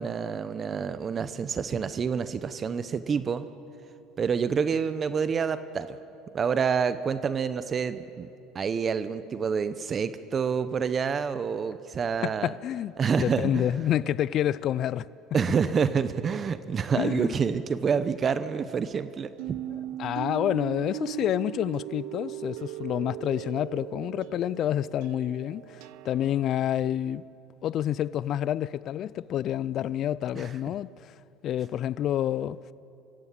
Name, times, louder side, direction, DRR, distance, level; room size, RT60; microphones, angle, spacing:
voice 1, 0.0-3.5 4.2-6.0 6.3-8.3 8.5-12.5 13.0-13.7 15.3-19.6 30.4-30.5, right 6 dB, 35° right, 0.8 m, -28 dB
voice 2, 12.2-12.9 13.2-15.1 17.0-17.4 19.7-27.3 27.6-31.2 31.4-32.6, left 11 dB, 55° left, 0.4 m, -28 dB
sound 1, 19.4-26.7, right 16 dB, 75° right, 0.5 m, -38 dB
24.0 x 15.5 x 8.4 m
supercardioid pair, 95°, 0 cm